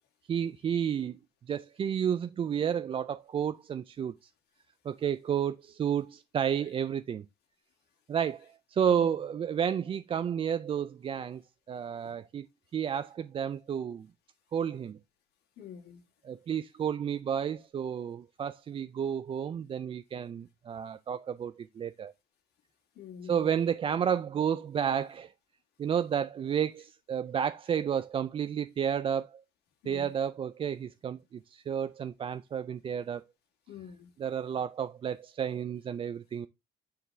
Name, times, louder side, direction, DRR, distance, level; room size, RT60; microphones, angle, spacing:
voice 1, 0.3-1.2 1.5-4.1 4.8-7.2 8.1-11.4 11.7-12.4 12.7-14.1 14.5-15.0 16.2-22.1 23.3-25.3 25.8-29.4 29.9-33.2 34.2-36.5, right 8 dB, 35° right, 0.4 m, -31 dB
voice 2, 15.6-16.0 23.0-23.6 29.8-30.1 33.7-34.1, left 7 dB, 75° left, 2.0 m, -46 dB
9.5 x 3.8 x 3.3 m
cardioid pair, 110°, 17 cm